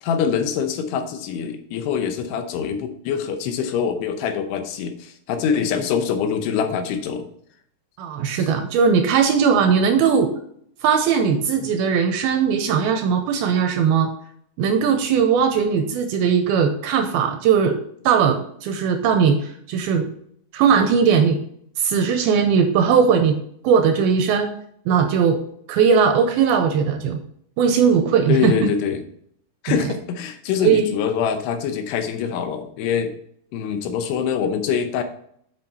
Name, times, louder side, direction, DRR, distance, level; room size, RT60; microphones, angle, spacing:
voice 1, 0.0-7.3 8.4-8.5 28.3-29.0 29.6-33.1 33.5-35.0, left 7 dB, 80° left, 7 dB, 2.9 m, -24 dB
voice 2, 8.0-10.3 10.8-14.1 14.6-17.8 18.1-20.1 20.5-21.4 21.8-23.4 23.6-24.5 24.9-25.4 25.7-27.2 27.6-28.7 29.7-29.8 30.6-30.8, right 6 dB, 80° right, 6 dB, 2.3 m, -19 dB
8.0 x 5.5 x 4.2 m, 0.67 s
omnidirectional pair, 4.8 m